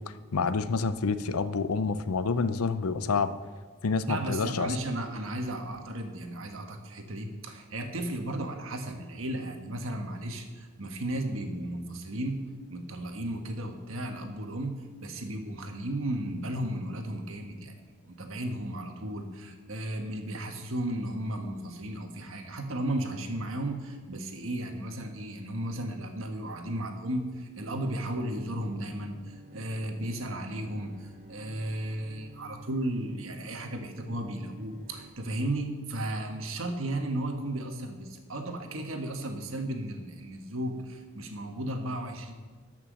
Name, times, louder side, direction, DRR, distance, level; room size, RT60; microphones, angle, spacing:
voice 1, 0.3-3.3 3.8-4.8, left 4 dB, 85° left, 12 dB, 0.6 m, -28 dB
voice 2, 4.1-12.4 12.7-17.7 18.0-42.3, right 1 dB, 65° right, 4 dB, 1.4 m, -34 dB
Bowed string instrument, 27.6-35.1, right 2 dB, 30° right, 1.0 m, -51 dB
13.0 x 6.0 x 6.4 m, 1.4 s
head